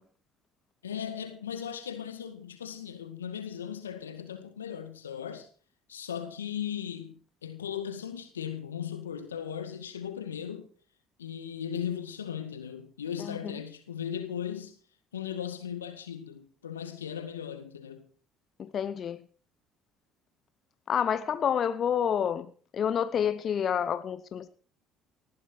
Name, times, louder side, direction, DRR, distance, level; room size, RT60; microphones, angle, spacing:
voice 1, 0.8-5.5 5.9-10.7 11.2-14.8 15.1-18.1, left 8 dB, 85° left, 2.0 m, -37 dB
voice 2, 13.2-13.6 18.6-19.2 20.9-24.5, left 8 dB, 45° left, 1.0 m, -29 dB
19.5 x 14.0 x 4.6 m
hypercardioid pair, 60°, 0 cm